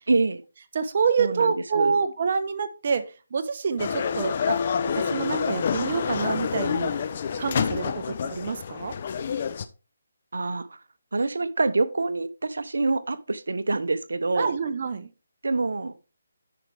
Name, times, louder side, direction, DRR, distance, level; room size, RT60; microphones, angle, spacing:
voice 1, 0.1-0.4 1.2-2.0 10.3-10.8 11.1-14.6 15.4-15.9, right 3 dB, 80° right, 0.9 m, -26 dB
voice 2, 0.7-3.0 3.3-4.6 4.9-7.0 7.4-8.9 14.3-15.1, right 5 dB, 45° right, 1.1 m, -27 dB
sound 1, 3.8-9.7, left 7 dB, 40° left, 0.7 m, -28 dB
9.7 x 6.0 x 3.4 m
figure-of-eight pair, 160°, 0 cm